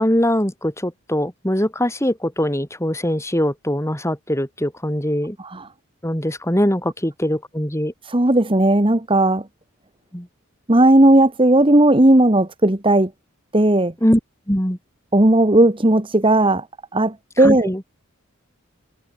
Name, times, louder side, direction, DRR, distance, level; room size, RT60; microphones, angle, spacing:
voice 1, 0.0-5.4 6.0-7.9 10.1-10.3 14.0-14.2 14.5-14.8 17.4-17.8, equal, 15° left, 4.4 m, -22 dB
voice 2, 8.1-9.5 10.7-13.1 13.5-13.9 15.1-16.7 16.9-17.7, right 1 dB, 25° right, 1.4 m, -15 dB
head